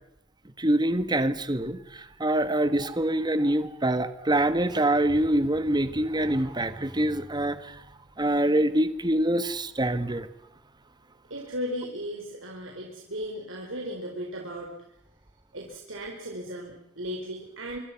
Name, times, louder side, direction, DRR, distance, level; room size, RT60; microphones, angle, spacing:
voice 1, 0.6-7.8 8.2-10.3, right 1 dB, 20° right, 12 dB, 1.4 m, -25 dB
voice 2, 11.3-14.8 15.5-17.8, equal, 75° right, -1 dB, 4.5 m, -36 dB
26.0 x 25.0 x 5.9 m, 0.82 s
head